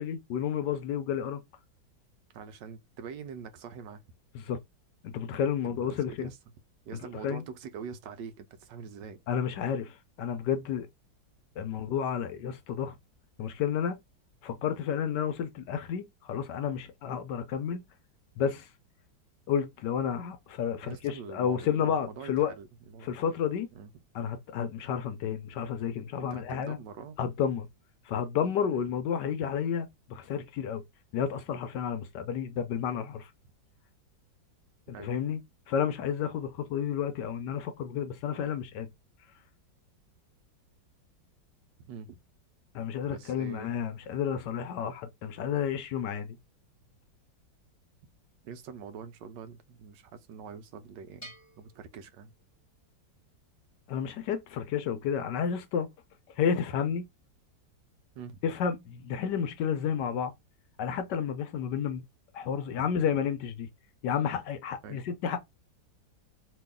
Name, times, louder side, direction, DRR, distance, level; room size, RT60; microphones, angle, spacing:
voice 1, 0.0-1.4 4.3-4.6 5.0-6.3 7.2-7.4 9.3-10.9 11.6-13.0 13.4-14.0 14.4-17.8 18.4-18.7 19.5-22.5 23.0-23.7 24.1-26.8 27.2-27.7 28.1-30.8 31.1-33.3 35.0-35.4 35.7-38.9 42.7-46.4 53.9-55.9 56.4-57.0 58.4-60.3 60.8-62.0 62.3-63.7 64.0-65.4, left 8 dB, 70° left, 1.1 m, -31 dB
voice 2, 2.3-4.0 5.6-6.4 6.9-9.2 20.8-23.1 23.7-23.9 26.2-27.2 28.7-28.8 34.9-35.1 41.8-42.2 43.1-43.7 48.4-52.3 58.1-58.4 62.8-62.9 64.8-65.0, right 6 dB, 75° right, 1.2 m, -44 dB
Bell, 51.2-52.9, right 1 dB, 10° left, 0.9 m, -52 dB
3.0 x 2.7 x 3.5 m
omnidirectional pair, 2.1 m